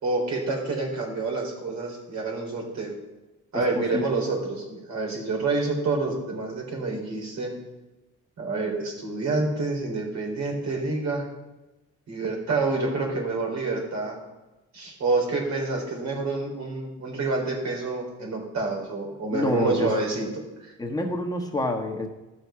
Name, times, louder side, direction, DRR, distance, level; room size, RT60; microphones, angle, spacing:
voice 1, 0.0-2.9 3.5-7.5 8.4-11.2 12.1-14.2 14.7-20.3 20.6-20.7, right 3 dB, 65° right, 0 dB, 3.9 m, -28 dB
voice 2, 19.3-19.9 20.8-22.1, left 2 dB, 10° left, 1 dB, 1.4 m, -27 dB
13.0 x 6.3 x 5.7 m, 1.1 s
cardioid pair, 90°, 30 cm